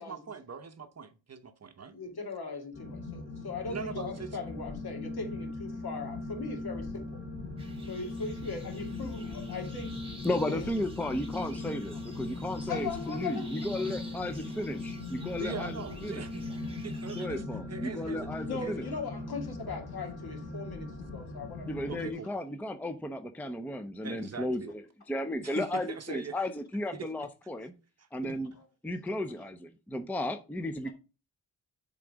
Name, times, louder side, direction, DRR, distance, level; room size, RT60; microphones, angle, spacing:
voice 1, 0.0-2.0 3.7-4.3 15.4-16.5 16.8-18.3 18.6-18.7 21.9-22.3 24.0-24.7 25.4-26.4 26.9-27.1 28.2-28.4, right 6 dB, 40° right, 0.7 m, -41 dB
voice 2, 1.9-7.2 7.9-10.0 10.5-10.7 12.7-13.5 18.5-21.9 28.5-28.6, left 4 dB, 60° left, 2.2 m, -39 dB
sound 1, 2.7-22.1, left 2 dB, 30° left, 3.1 m, -39 dB
sound 2, 7.6-17.3, right 1 dB, 15° right, 1.6 m, -52 dB
voice 3, 10.2-16.3 17.2-18.9 21.7-24.6 25.1-27.7 28.1-28.5 28.8-30.9, left 1 dB, 5° left, 0.6 m, -34 dB
7.5 x 3.9 x 4.7 m
wide cardioid pair, 105°, 42 cm